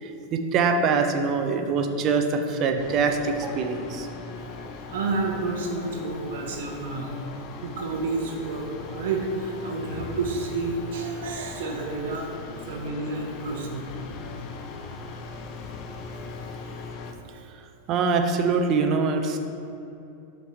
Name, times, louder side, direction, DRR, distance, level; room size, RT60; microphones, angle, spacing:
voice 1, 0.0-4.1 17.9-19.4, right 4 dB, 35° right, 5 dB, 0.5 m, -24 dB
sound 1, 2.8-17.1, left 4 dB, 40° left, 0.5 m, -39 dB
voice 2, 4.9-12.3 12.7-13.9, right 3 dB, 55° right, 1 dB, 0.9 m, -30 dB
5.5 x 4.5 x 4.3 m, 2.8 s
figure-of-eight pair, 90°, 0 cm